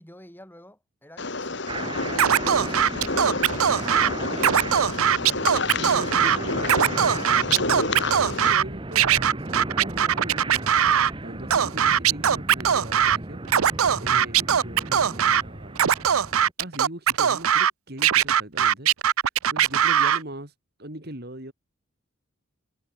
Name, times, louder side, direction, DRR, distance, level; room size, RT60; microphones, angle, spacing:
voice 1, 0.0-3.2 3.6-4.3, left 1 dB, 10° left, 6.0 m, -49 dB
sound 1, 1.2-8.5, left 3 dB, 55° left, 2.2 m, -30 dB
sound 2, 1.7-16.5, right 2 dB, 25° right, 1.1 m, -35 dB
Scratching (performance technique), 2.2-4.1 4.4-6.4 6.6-8.6 9.0-11.1 11.5-13.2 13.5-15.4 15.8-17.7 18.0-20.2, right 9 dB, 85° right, 0.6 m, -20 dB
voice 2, 5.7-7.0 7.5-10.7 11.2-13.4 14.0-15.8 16.6-18.9 19.5-20.5 20.8-21.5, right 1 dB, 50° right, 4.1 m, -40 dB
head